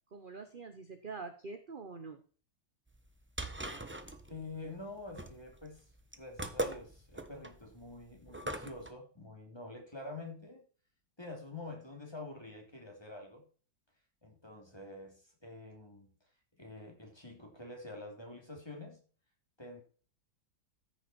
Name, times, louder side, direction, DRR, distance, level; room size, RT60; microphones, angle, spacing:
voice 1, 0.1-2.2, right 4 dB, 35° right, 7 dB, 0.9 m, -45 dB
sound 1, 2.9-8.9, right 1 dB, 15° right, 0.4 m, -41 dB
voice 2, 4.3-5.8 6.2-10.6 11.2-13.4 14.2-16.1 16.6-19.0 19.6-19.8, left 2 dB, 15° left, 1 dB, 3.0 m, -47 dB
14.0 x 6.5 x 4.4 m, 0.41 s
omnidirectional pair, 2.0 m